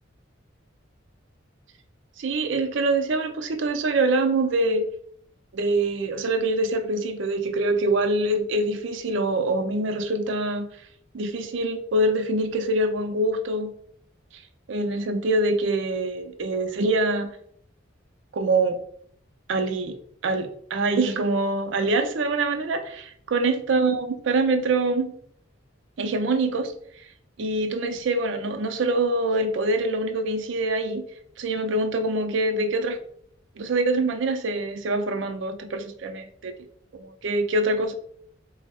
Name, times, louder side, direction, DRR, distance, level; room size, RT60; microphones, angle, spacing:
voice 1, 2.2-4.9 5.5-10.7 11.1-13.7 14.7-17.3 18.3-18.8 19.5-20.0 20.2-25.1 26.0-26.7 27.4-31.0 31.4-33.0 33.6-36.5 36.9-37.9, right 2 dB, 65° right, 7 dB, 0.4 m, -24 dB
4.0 x 2.0 x 3.4 m, 0.65 s
head